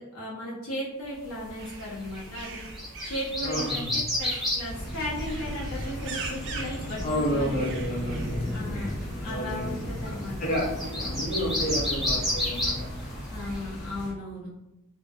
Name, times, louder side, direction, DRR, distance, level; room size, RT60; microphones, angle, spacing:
voice 1, 0.0-7.7 8.5-8.9 9.2-10.4 13.3-14.5, left 1 dB, 75° left, -5 dB, 0.6 m, -36 dB
sound 1, 1.4-13.8, left 1 dB, ahead, 0.5 m, -34 dB
sound 2, 1.6-8.6, right 4 dB, 55° right, 0.4 m, -43 dB
voice 2, 3.4-3.9 7.0-13.1, equal, 35° left, -6 dB, 0.8 m, -31 dB
sound 3, 4.7-14.1, equal, 90° left, 1.0 m, -36 dB
2.2 x 2.1 x 2.7 m, 0.96 s
head